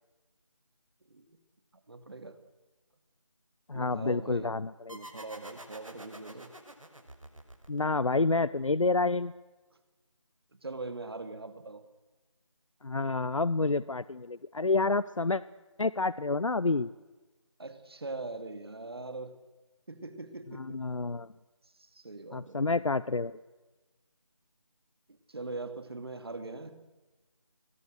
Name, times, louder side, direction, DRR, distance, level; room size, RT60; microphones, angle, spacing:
voice 1, 1.1-1.4 1.9-2.4 3.7-4.5 4.9-6.5 10.6-11.8 17.6-19.4 19.9-20.8 21.8-22.6 25.1-26.9, right 3 dB, 50° right, 10 dB, 2.9 m, -41 dB
voice 2, 3.7-5.0 7.7-9.3 12.8-15.4 15.8-16.9 20.5-21.3 22.3-23.3, left 3 dB, 75° left, 18 dB, 0.8 m, -29 dB
sound 1, 4.9-8.2, right 1 dB, 85° right, 6.0 m, -48 dB
28.0 x 21.5 x 6.6 m, 1.2 s
figure-of-eight pair, 170°, 17 cm